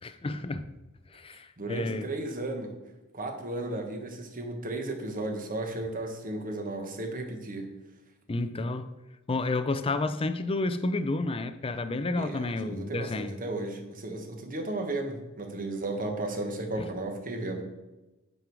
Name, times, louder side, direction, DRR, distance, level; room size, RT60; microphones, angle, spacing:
voice 1, 0.0-0.7 1.1-2.1 8.3-8.9 9.3-13.4, left 2 dB, 25° left, 0.5 m, -30 dB
voice 2, 1.6-2.7 3.1-7.7 12.2-17.6, right 2 dB, 40° right, 1.3 m, -34 dB
8.9 x 5.4 x 4.7 m
head